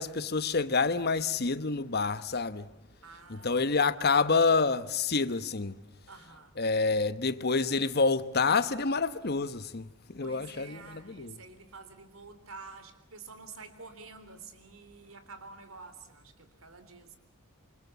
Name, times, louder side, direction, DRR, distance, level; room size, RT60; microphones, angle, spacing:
voice 1, 0.0-2.7 3.3-5.7 6.6-9.9 10.1-11.4, left 4 dB, 45° left, 1.1 m, -28 dB
voice 2, 3.0-3.7 6.1-6.6 10.2-17.2, right 4 dB, 70° right, 3.6 m, -49 dB
27.5 x 25.0 x 8.5 m
head